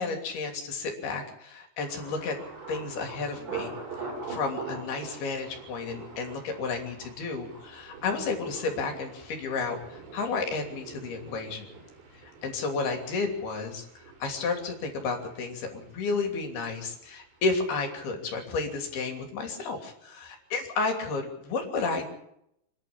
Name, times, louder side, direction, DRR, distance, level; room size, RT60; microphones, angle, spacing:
voice 1, 0.0-2.4 2.7-3.7 4.0-11.7 12.2-13.8 14.2-22.1, left 4 dB, 60° left, 3 dB, 4.7 m, -32 dB
Thunder, 1.9-17.6 17.9-18.5 18.9-19.2, right 4 dB, 70° right, 7.1 m, -44 dB
27.5 x 11.0 x 8.7 m, 0.77 s
omnidirectional pair, 5.3 m